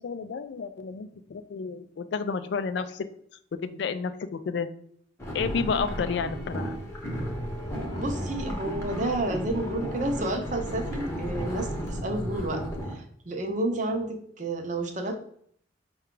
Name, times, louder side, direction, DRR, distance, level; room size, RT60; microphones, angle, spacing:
voice 1, 0.0-3.1 3.6-4.7 5.3-6.8, left 5 dB, 65° left, 12 dB, 0.3 m, -31 dB
sound 1, 5.2-12.9, equal, 15° left, 0.8 m, -33 dB
voice 2, 7.9-12.6 12.9-15.1, right 2 dB, 40° right, 4 dB, 0.6 m, -30 dB
5.4 x 2.3 x 3.7 m, 0.64 s
head